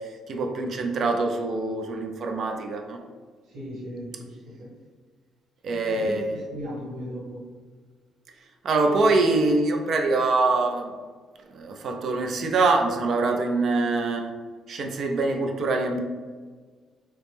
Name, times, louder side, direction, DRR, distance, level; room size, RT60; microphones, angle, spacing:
voice 1, 0.3-3.0 5.6-6.2 8.6-10.9 11.5-14.3 14.7-16.0, right 3 dB, 45° right, 4 dB, 0.4 m, -24 dB
voice 2, 3.5-4.3 4.6-4.7 5.7-7.4, equal, 75° right, -5 dB, 1.4 m, -36 dB
4.2 x 2.0 x 3.3 m, 1.5 s
cardioid pair, 165°, 0 cm